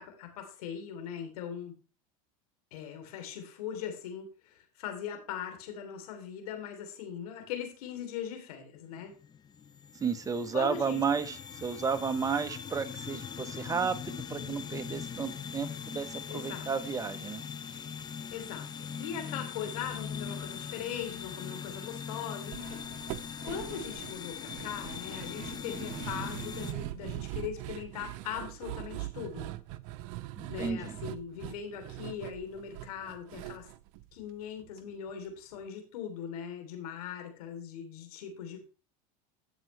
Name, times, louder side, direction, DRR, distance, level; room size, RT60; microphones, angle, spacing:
voice 1, 0.0-1.7 2.7-9.1 10.5-11.0 16.3-16.7 18.3-18.7 19.0-22.9 23.5-29.5 30.5-33.7 34.1-38.6, left 8 dB, 80° left, 4 dB, 3.3 m, -40 dB
sound 1, 8.8-26.7, left 7 dB, 25° left, 0.5 m, -41 dB
voice 2, 9.9-17.4 30.4-31.0, right 6 dB, 20° right, 10 dB, 1.0 m, -32 dB
sound 2, 22.5-34.8 35.1-35.2 35.5-35.6, right 16 dB, 65° right, 0.7 m, -42 dB
11.5 x 7.6 x 3.3 m, 0.34 s
supercardioid pair, 115°, 19 cm